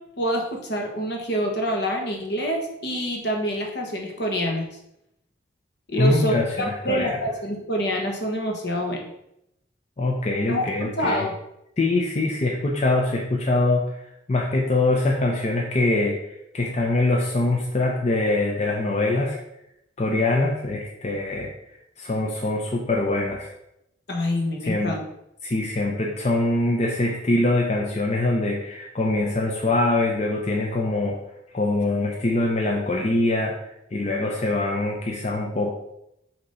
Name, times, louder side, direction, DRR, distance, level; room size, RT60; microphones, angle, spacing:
voice 1, 0.2-4.7 5.9-9.1 10.5-11.3 24.1-25.0, equal, 65° left, 2 dB, 1.3 m, -26 dB
voice 2, 6.0-7.2 10.0-11.3 11.8-14.0 14.3-19.4 20.0-21.5 22.0-23.5 24.6-25.0 25.4-31.2 31.5-35.7, left 2 dB, 35° left, -1 dB, 0.7 m, -23 dB
6.5 x 3.0 x 5.5 m, 0.81 s
head